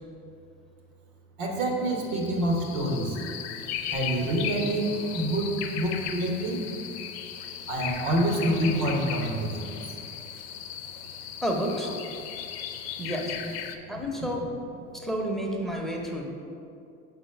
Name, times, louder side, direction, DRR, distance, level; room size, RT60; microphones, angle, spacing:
voice 1, 1.4-3.2 3.9-6.7 7.7-9.7, right 1 dB, 70° right, 1 dB, 1.4 m, -27 dB
sound 1, 1.7-13.8, left 9 dB, 75° left, 0.6 m, -37 dB
voice 2, 11.4-11.9 13.0-13.4 13.9-14.5 14.9-16.2, equal, ahead, 0 dB, 0.8 m, -30 dB
5.0 x 4.2 x 5.7 m, 2.6 s
supercardioid pair, 100°, 31 cm